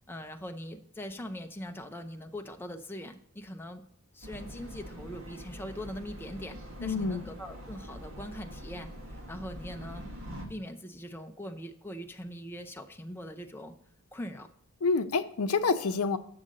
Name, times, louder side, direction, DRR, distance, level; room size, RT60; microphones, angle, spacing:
voice 1, 0.1-3.8 4.1-10.0 10.5-13.8 14.1-14.5, equal, 10° left, 4 dB, 0.5 m, -42 dB
sound 1, 4.2-10.5, equal, 65° right, 1.6 m, -44 dB
voice 2, 6.8-7.2 14.8-16.2, left 4 dB, 75° left, 10 dB, 0.6 m, -27 dB
7.8 x 6.3 x 3.8 m, 0.71 s
head